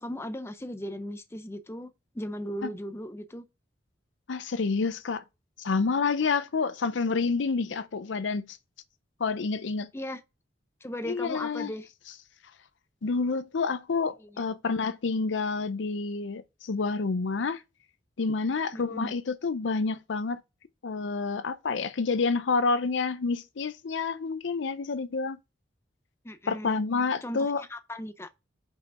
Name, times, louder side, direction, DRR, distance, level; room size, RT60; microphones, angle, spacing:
voice 1, 0.0-3.4 9.9-10.2 10.8-11.9 14.2-14.5 18.7-19.1 26.2-26.8 27.2-28.3, equal, 15° left, 0.6 m, -37 dB
voice 2, 4.3-5.2 5.6-8.6 9.2-9.9 11.0-11.7 13.0-17.6 18.2-20.4 20.8-25.4 26.5-27.6, left 4 dB, 80° left, 0.5 m, -28 dB
5.6 x 5.1 x 4.8 m
head